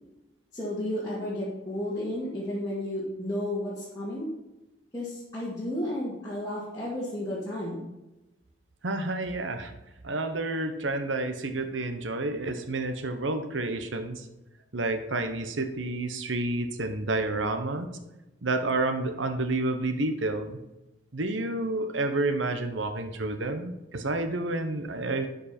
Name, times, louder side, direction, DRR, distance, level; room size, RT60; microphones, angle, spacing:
voice 1, 0.5-4.3 4.9-7.9, left 1 dB, 20° left, -9 dB, 2.0 m, -32 dB
voice 2, 8.8-9.7 10.0-14.3 14.7-17.9 18.4-20.6 21.1-25.3, right 2 dB, 80° right, 7 dB, 1.0 m, -29 dB
11.5 x 5.2 x 4.3 m, 0.98 s
head